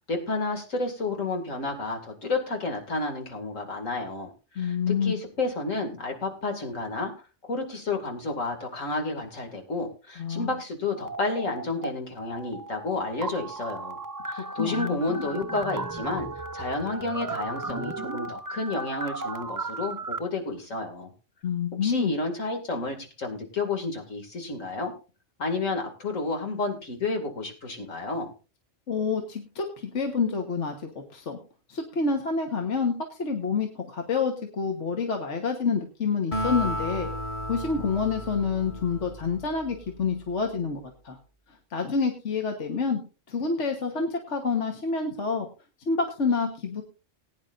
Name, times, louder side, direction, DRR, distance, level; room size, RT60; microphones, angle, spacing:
voice 1, 0.1-7.1 7.4-14.0 14.3-16.3 16.5-21.1 21.8-24.9 25.4-28.3, left 3 dB, 85° left, 3 dB, 2.7 m, -31 dB
voice 2, 4.6-5.1 10.2-10.5 14.6-15.0 21.4-22.1 28.9-31.4 31.7-37.1 37.5-41.2 41.7-43.0 43.3-45.5 45.9-46.8, left 5 dB, 65° left, 3 dB, 1.6 m, -28 dB
sound 1, 10.9-11.9 12.2-20.2, right 2 dB, 25° right, 0.4 m, -35 dB
Acoustic guitar, 36.3-39.9, right 1 dB, 25° left, 1.7 m, -33 dB
19.5 x 9.7 x 2.6 m, 0.32 s
omnidirectional pair, 1.3 m